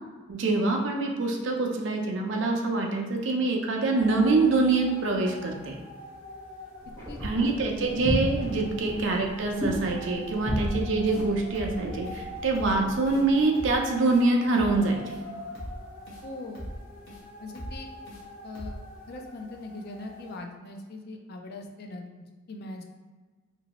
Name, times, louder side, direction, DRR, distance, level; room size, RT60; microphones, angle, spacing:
voice 1, 0.3-5.8 7.2-15.0, right 3 dB, 60° right, 1 dB, 0.5 m, -25 dB
sound 1, 4.0-20.4, left 1 dB, 90° left, 0.9 m, -45 dB
sound 2, 6.8-13.4, equal, 10° left, 0.9 m, -34 dB
voice 2, 7.1-7.5 8.7-8.8 16.2-16.6 17.4-17.9 18.4-18.8 19.1-22.0 22.5-22.8, left 2 dB, 50° left, 3 dB, 0.3 m, -41 dB
sound 3, 11.1-11.3 11.6-11.8 12.1-12.2 12.6-12.8 13.1-13.2 13.6-13.8 14.1-14.2 14.6-14.8 15.1-15.2 15.6-15.8 16.1-16.2 16.6-16.8 17.1-17.2 17.6-17.8 18.1-18.2 18.6-18.8, equal, 65° left, 1.0 m, -40 dB
3.0 x 2.6 x 2.8 m, 1.3 s
head